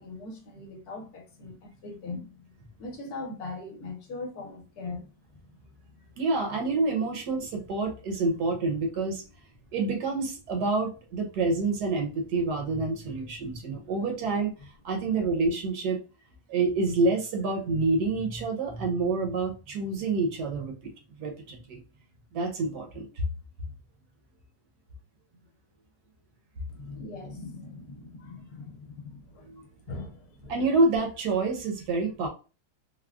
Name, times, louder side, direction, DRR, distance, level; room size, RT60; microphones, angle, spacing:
voice 1, 0.0-2.5 2.8-5.1 13.5-13.8 15.0-15.1 26.7-29.6 29.9-30.6, left 3 dB, 70° left, 1.1 m, -41 dB
voice 2, 6.2-9.2 9.7-14.5 14.8-16.0 16.5-20.9 21.2-21.8 22.3-23.2 29.5-29.6 30.5-32.3, right 3 dB, 70° right, 1.3 m, -27 dB
3.5 x 2.0 x 2.3 m
omnidirectional pair, 1.9 m